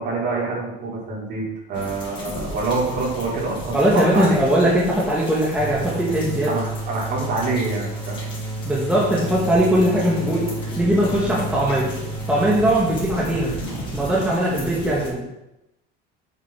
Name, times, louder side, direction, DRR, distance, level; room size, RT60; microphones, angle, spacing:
voice 1, 0.0-3.8 4.1-4.4 6.5-8.2, right 3 dB, 50° right, -5 dB, 4.5 m, -26 dB
sound 1, 1.7-15.1, left 1 dB, 25° left, 3.3 m, -36 dB
voice 2, 3.7-6.5 8.6-10.4 10.8-11.9 12.3-13.5 13.9-15.2, right 1 dB, 5° right, -6 dB, 2.0 m, -20 dB
sound 2, 5.6-14.3, right 2 dB, 80° right, 3.4 m, -31 dB
8.3 x 7.2 x 6.0 m, 0.91 s
cardioid pair, 160°, 20 cm